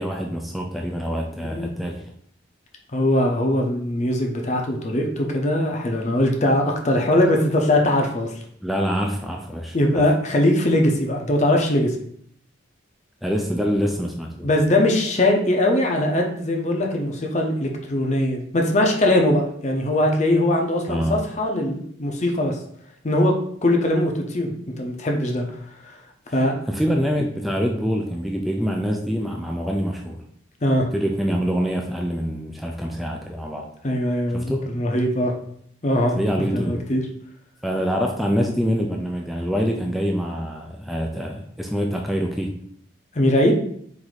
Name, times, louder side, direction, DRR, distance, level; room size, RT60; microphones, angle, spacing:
voice 1, 0.0-2.1 8.6-9.8 13.2-14.5 20.9-21.2 26.7-30.2 30.9-33.7 34.3-34.6 36.1-36.8 37.6-42.5, equal, ahead, 1 dB, 0.3 m, -25 dB
voice 2, 2.9-8.4 9.7-12.0 14.4-22.6 23.0-23.3 23.6-26.0 26.3-26.5 30.6-30.9 33.8-35.3 35.8-37.0 43.1-43.5, left 1 dB, 35° left, 2 dB, 0.6 m, -21 dB
4.7 x 2.6 x 4.0 m, 0.66 s
head